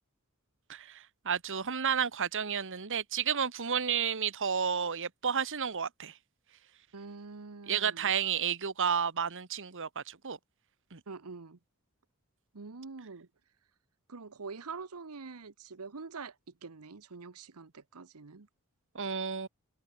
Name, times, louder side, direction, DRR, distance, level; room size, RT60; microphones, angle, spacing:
voice 1, 0.7-6.1 7.7-10.4 10.9-11.0 18.9-19.5, right 7 dB, 60° right, 1.4 m, -31 dB
voice 2, 6.9-8.2 11.1-11.6 12.5-13.3 14.1-16.4 16.6-18.5, right 4 dB, 85° right, 1.0 m, -45 dB
head